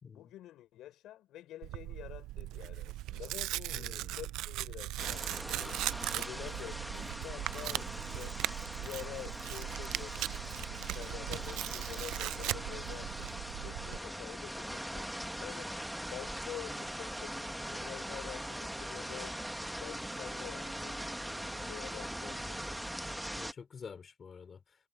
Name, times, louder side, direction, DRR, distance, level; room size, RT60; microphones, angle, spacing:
voice 1, 0.1-8.4 8.8-19.5 19.8-22.9, left 13 dB, 55° left, 3.8 m, -48 dB
Tearing, 1.6-14.0, right 16 dB, 65° right, 0.3 m, -39 dB
voice 2, 3.7-4.2 23.4-24.6, left 6 dB, 25° left, 3.8 m, -48 dB
sound 1, 5.0-23.5, equal, ahead, 1.2 m, -41 dB
cardioid pair, 175°, 0 cm